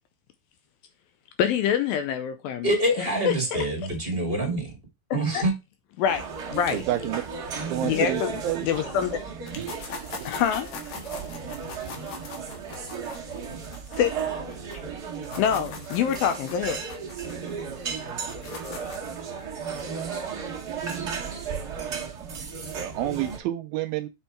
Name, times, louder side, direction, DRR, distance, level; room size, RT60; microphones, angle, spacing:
voice 1, 1.4-2.7 3.3-3.7 5.3-5.4 6.0-6.8 7.8-9.2 10.3-10.7 13.9-14.1 15.4-16.8, left 8 dB, 80° left, 2.2 m, -25 dB
voice 2, 2.6-4.8 5.1-5.5, right 1 dB, 20° right, 1.7 m, -25 dB
sound 1, 6.1-23.4, right 6 dB, 45° right, 1.2 m, -35 dB
voice 3, 6.7-7.2 7.7-8.7 9.6-9.7 20.9-21.1 22.2-22.3 22.8-24.1, right 14 dB, 80° right, 2.2 m, -29 dB
sound 2, 9.5-14.8 15.1-19.1, left 5 dB, 65° left, 2.9 m, -41 dB
7.1 x 4.6 x 4.4 m
omnidirectional pair, 4.6 m